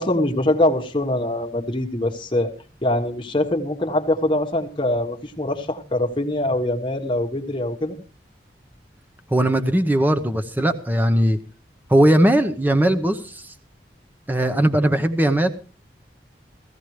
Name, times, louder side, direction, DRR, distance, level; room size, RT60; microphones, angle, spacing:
voice 1, 0.0-2.5 2.8-8.0, left 1 dB, 30° left, 3 dB, 1.3 m, -23 dB
voice 2, 9.3-11.4 11.9-13.5 14.3-15.5, right 1 dB, 10° right, 8 dB, 0.8 m, -19 dB
16.5 x 15.5 x 3.2 m, 0.35 s
head